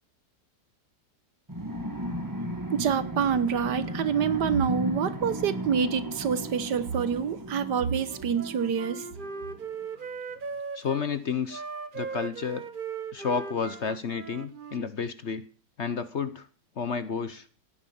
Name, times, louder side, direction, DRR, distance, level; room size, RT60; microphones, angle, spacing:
sound 1, 1.5-9.6, right 1 dB, 10° right, 1.5 m, -36 dB
voice 1, 2.7-9.0, right 7 dB, 75° right, 1.7 m, -27 dB
Wind instrument woodwind instrument, 8.1-11.0 11.5-14.9, right 5 dB, 35° right, 0.9 m, -38 dB
voice 2, 10.7-11.6 11.9-12.7 13.1-15.4 15.8-16.5 16.8-17.5, left 6 dB, 50° left, 1.1 m, -31 dB
17.0 x 9.6 x 7.1 m
omnidirectional pair, 1.8 m